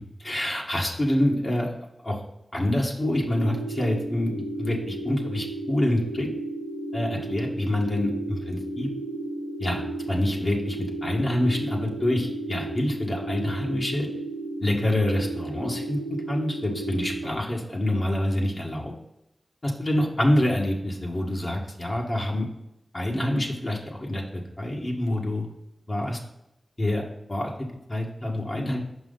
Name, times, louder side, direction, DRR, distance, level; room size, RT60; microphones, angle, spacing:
voice 1, 0.0-1.7 2.0-2.2 2.5-6.3 6.9-8.9 9.6-14.1 14.6-16.0 16.3-18.9 19.6-22.5 22.9-25.5 25.9-26.2 26.8-27.0 27.3-28.8, left 1 dB, 45° left, -1 dB, 1.7 m, -26 dB
sound 1, 3.0-17.3, right 2 dB, 75° left, 2.7 m, -34 dB
6.1 x 5.3 x 3.9 m, 0.89 s
cardioid pair, 40°, 0 cm